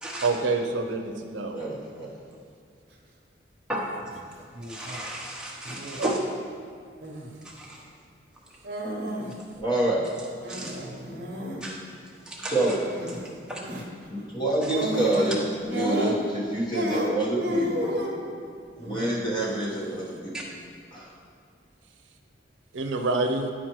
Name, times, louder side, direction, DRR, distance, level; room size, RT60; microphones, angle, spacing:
voice 1, 0.2-1.6 6.0-6.2 22.7-23.5, right 3 dB, 85° right, 5 dB, 0.6 m, -27 dB
voice 2, 1.5-2.2 9.5-10.0 12.4-12.8 14.1-17.9 18.8-20.3 20.9-21.1, right 1 dB, 25° left, -5 dB, 1.2 m, -27 dB
sound 1, 3.9-4.2 4.5-5.0 5.6-6.1 7.0-7.4 8.6-9.4 9.6-9.7 10.4-11.6 12.9-13.3 13.6-13.9 14.7-15.4 15.7-16.4 16.7-18.2 18.8-19.3, equal, 55° right, 0.9 m, -32 dB
voice 3, 4.6-6.2 7.4-7.8 10.5-10.8 11.6-11.8 12.3-12.8 13.5-13.6 14.6-14.7 20.3-20.4, right 1 dB, 5° right, -4 dB, 0.9 m, -34 dB
10.0 x 4.2 x 3.1 m, 2.2 s
head